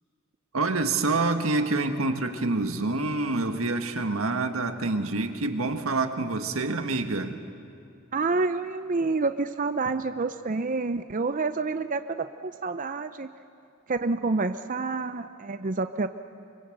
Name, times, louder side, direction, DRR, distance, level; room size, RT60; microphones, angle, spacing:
voice 1, 0.5-7.4, right 3 dB, 85° right, 6 dB, 1.7 m, -27 dB
voice 2, 8.1-13.3 13.9-16.1, right 3 dB, 40° right, 10 dB, 0.6 m, -28 dB
25.0 x 24.5 x 7.9 m, 2.5 s
head